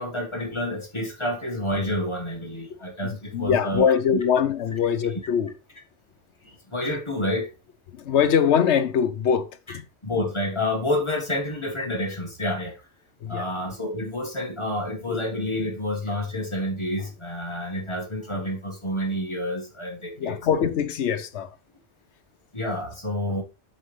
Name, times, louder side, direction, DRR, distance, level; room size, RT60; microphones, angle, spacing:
voice 1, 0.0-4.2 6.4-7.5 9.7-9.8 10.0-12.8 13.3-20.4 22.5-23.4, left 1 dB, 25° left, 1.6 m, -29 dB
voice 2, 3.0-5.5 7.9-9.8 13.2-13.5 15.1-15.2 20.2-21.5, left 7 dB, 85° left, 1.1 m, -23 dB
7.9 x 6.7 x 3.2 m
omnidirectional pair, 1.1 m